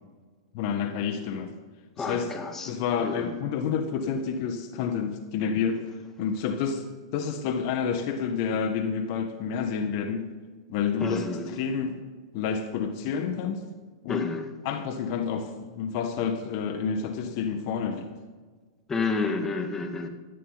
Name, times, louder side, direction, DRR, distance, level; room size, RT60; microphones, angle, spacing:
voice 1, 0.5-1.5 2.0-2.3 2.6-5.8 6.2-6.8 7.1-10.3 10.7-12.0 12.3-13.6 14.0-14.3 14.6-18.1, left 6 dB, 50° left, 8 dB, 1.6 m, -29 dB
voice 2, 2.0-2.7 3.0-3.4 11.0-11.6 14.1-14.4 18.9-20.1, left 3 dB, 15° left, 5 dB, 2.0 m, -30 dB
17.5 x 14.5 x 4.2 m, 1.4 s
hypercardioid pair, 105°, 2 cm